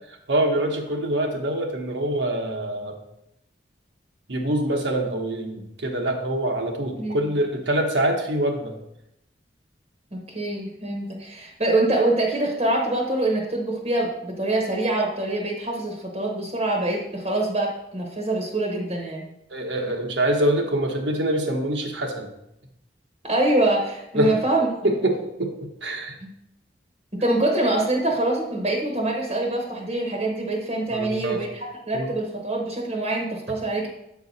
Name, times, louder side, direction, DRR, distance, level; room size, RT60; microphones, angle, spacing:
voice 1, 0.3-3.0 4.3-8.7 19.5-22.3 24.1-24.4 24.8-26.2 30.9-31.4 31.9-32.1, right 1 dB, 80° right, 2 dB, 1.1 m, -25 dB
voice 2, 7.0-7.3 10.1-19.3 23.2-24.7 26.2-26.3 27.1-33.9, right 2 dB, 35° right, 0 dB, 1.0 m, -25 dB
7.7 x 4.7 x 4.1 m, 0.83 s
head